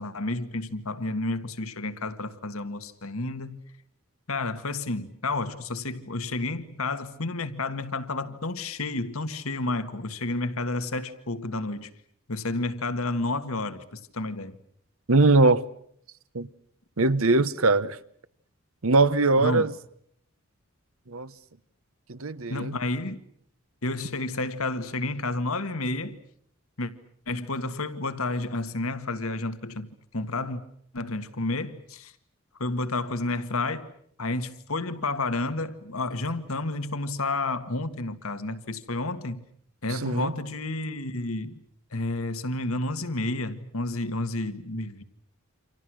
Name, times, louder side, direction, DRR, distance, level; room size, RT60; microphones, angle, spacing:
voice 1, 0.0-3.6 4.3-11.9 12.3-14.6 19.4-19.7 22.5-23.2 23.8-26.2 26.8-26.9 27.3-30.6 30.9-32.1 32.6-33.9 34.2-39.4 39.8-41.6 41.9-45.0, left 2 dB, 80° left, 1.9 m, -30 dB
voice 2, 15.1-15.6 16.3-16.5 17.0-18.0 18.8-19.7 21.1-21.3 22.1-22.7 40.0-40.3, right 3 dB, 80° right, 1.1 m, -21 dB
29.0 x 26.5 x 6.3 m
head